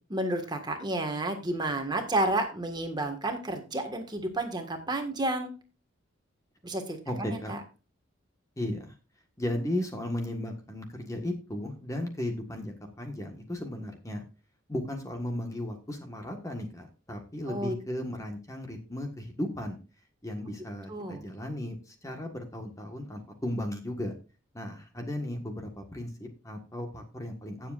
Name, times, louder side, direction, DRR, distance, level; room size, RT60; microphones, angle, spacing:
voice 1, 0.1-5.5 6.6-7.6 17.5-17.7 20.9-21.2, right 2 dB, 20° right, 5 dB, 1.6 m, -31 dB
voice 2, 7.1-7.5 8.6-8.9 9.4-14.2 14.7-19.8 20.2-24.1 24.5-27.7, left 1 dB, 15° left, 4 dB, 1.4 m, -35 dB
17.0 x 7.4 x 2.5 m, 0.32 s
head